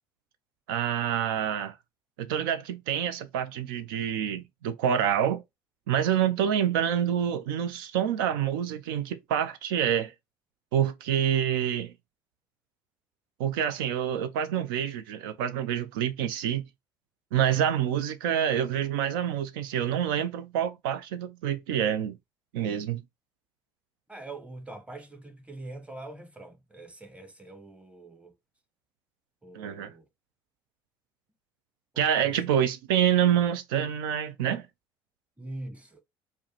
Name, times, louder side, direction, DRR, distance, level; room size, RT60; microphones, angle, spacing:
voice 1, 0.7-1.8 2.2-5.4 5.9-10.1 10.7-11.9 13.4-16.6 17.3-22.2 22.5-23.0 29.5-29.9 32.0-34.7, right 9 dB, 90° right, 0.4 m, -27 dB
voice 2, 24.1-28.3 29.4-30.0 31.9-32.4 35.4-36.0, right 2 dB, 10° right, 1.0 m, -43 dB
4.7 x 2.2 x 2.9 m
supercardioid pair, 75°, 11 cm